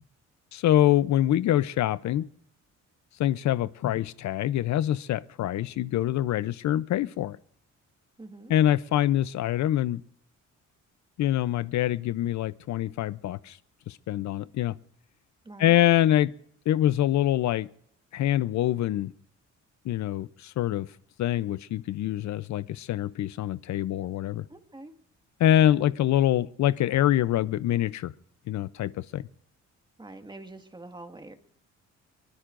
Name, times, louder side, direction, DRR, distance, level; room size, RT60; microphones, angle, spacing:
voice 1, 0.5-2.3 3.2-7.4 8.5-10.0 11.2-13.6 13.9-14.8 15.6-16.3 16.7-17.7 18.1-19.1 19.9-20.9 21.2-24.4 25.4-28.1 28.5-29.3, left 12 dB, 65° left, 17 dB, 0.6 m, -25 dB
voice 2, 8.2-8.5 15.4-15.8 24.5-25.0 30.0-31.4, right 2 dB, 15° right, 6 dB, 1.8 m, -45 dB
23.0 x 20.5 x 2.5 m, 0.68 s
cardioid pair, 90°, 30 cm